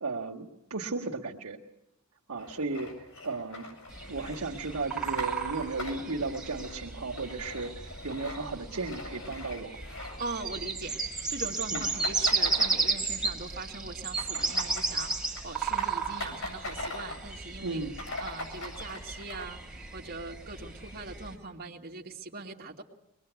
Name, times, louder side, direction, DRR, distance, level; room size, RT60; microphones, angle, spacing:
voice 1, 0.0-1.6 2.3-2.9 3.2-3.7 4.1-9.7 11.7-11.8 17.6-18.0, right 3 dB, 85° right, -2 dB, 1.8 m, -35 dB
sound 1, 2.4-10.8 11.0-11.2 11.5-13.3 13.6-17.3 17.7-17.8 17.9-19.4, left 2 dB, 90° left, 8.0 m, -42 dB
sound 2, 3.9-21.4, right 4 dB, 5° right, 3.8 m, -34 dB
voice 2, 10.2-11.0 11.3-17.8 18.2-19.6 19.9-22.8, right 3 dB, 45° right, 0 dB, 2.2 m, -41 dB
23.5 x 20.5 x 8.3 m, 0.88 s
head